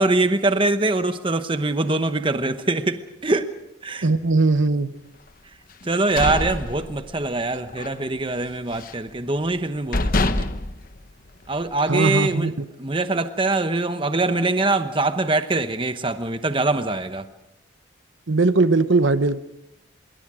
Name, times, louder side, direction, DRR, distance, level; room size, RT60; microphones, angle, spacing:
voice 1, 0.0-3.5 3.8-4.1 5.8-10.5 11.5-17.2, right 2 dB, 25° right, 9 dB, 1.0 m, -23 dB
voice 2, 4.0-4.9 11.9-12.5 18.3-19.4, right 3 dB, 70° right, 12 dB, 1.0 m, -19 dB
sound 1, 5.8-7.4 7.7-8.0 8.3-9.1 9.6-9.7 9.9-11.7, left 2 dB, 45° left, 1.0 m, -26 dB
25.5 x 23.0 x 5.0 m, 0.86 s
head